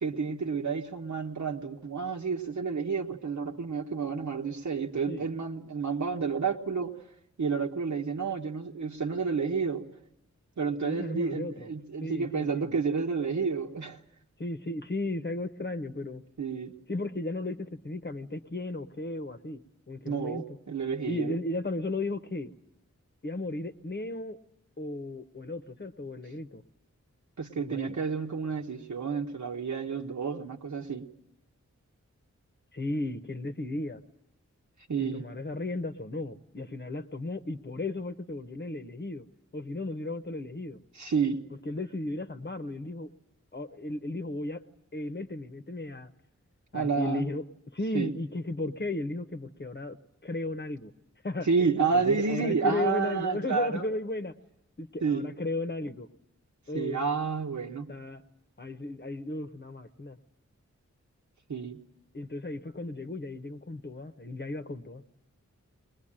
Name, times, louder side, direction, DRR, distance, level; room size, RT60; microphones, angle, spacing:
voice 1, 0.0-6.9 7.4-9.9 10.6-14.0 16.4-16.7 20.1-21.4 27.4-31.1 34.9-35.3 40.9-41.5 46.7-47.3 47.9-48.1 51.5-53.9 55.0-55.3 56.7-58.0 61.5-61.8, right 5 dB, 80° right, 1.3 m, -30 dB
voice 2, 10.8-11.7 12.0-12.8 14.4-16.2 16.9-19.6 19.9-20.4 21.1-22.5 23.2-24.4 24.8-26.6 27.6-28.0 32.7-34.0 35.0-39.2 39.5-40.8 41.6-43.1 43.5-44.6 44.9-46.1 46.7-47.4 47.7-50.0 50.2-50.9 51.2-51.5 51.9-54.3 54.8-56.1 56.7-57.0 57.9-58.2 58.6-60.2 62.1-65.0, left 2 dB, 35° left, 0.9 m, -35 dB
21.0 x 21.0 x 8.8 m
wide cardioid pair, 95°, 29 cm